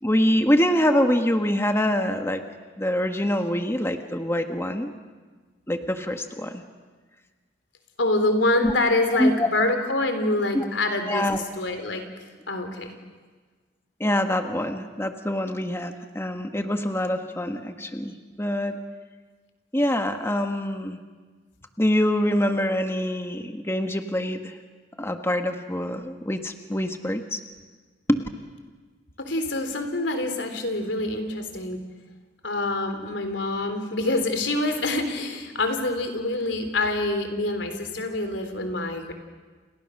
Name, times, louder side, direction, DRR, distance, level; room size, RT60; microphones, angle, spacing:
voice 1, 0.0-2.4 2.8-4.9 5.7-6.6 8.6-8.7 9.1-9.5 10.5-10.6 11.1-11.4 14.0-18.8 19.7-21.0 21.8-24.6 25.0-27.4 28.1-28.2, left 1 dB, 15° left, 6 dB, 1.4 m, -25 dB
voice 2, 8.0-11.3 11.6-12.0 12.5-12.9 29.2-31.8 32.4-39.1, left 2 dB, 90° left, 6 dB, 3.7 m, -26 dB
29.5 x 29.0 x 6.6 m, 1.4 s
head